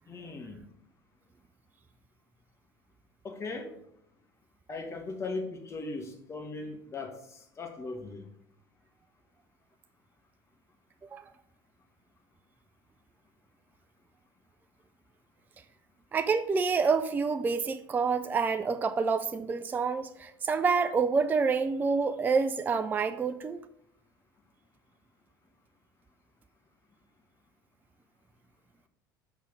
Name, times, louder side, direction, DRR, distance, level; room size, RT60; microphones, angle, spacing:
voice 1, 0.1-0.6 3.2-3.7 4.7-8.3, left 3 dB, 25° left, 1.3 m, -38 dB
voice 2, 16.1-23.6, right 5 dB, 15° right, 0.4 m, -27 dB
6.0 x 5.4 x 5.1 m
figure-of-eight pair, 70°, 12 cm